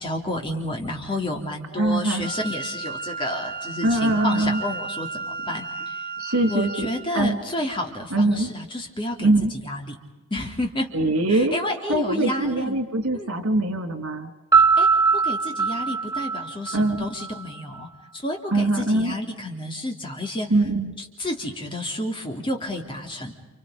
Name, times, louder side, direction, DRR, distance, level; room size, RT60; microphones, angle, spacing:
voice 1, 0.0-6.0 6.4-10.0 10.3-10.9 11.3-12.8 13.1-13.3 14.6-20.5 21.0-23.3, left 1 dB, 20° left, 1 dB, 3.4 m, -30 dB
voice 2, 1.7-2.3 3.8-4.6 6.2-7.4 8.1-8.5 9.2-9.5 10.9-11.6 11.9-14.3 16.7-17.1 18.5-19.1 20.5-21.0, right 2 dB, 80° right, 6 dB, 3.2 m, -22 dB
Wind instrument woodwind instrument, 2.2-7.0, right 4 dB, 35° right, 4.6 m, -34 dB
Piano, 14.5-17.3, right 5 dB, 15° right, 1.3 m, -20 dB
30.0 x 29.5 x 5.3 m, 1.1 s
head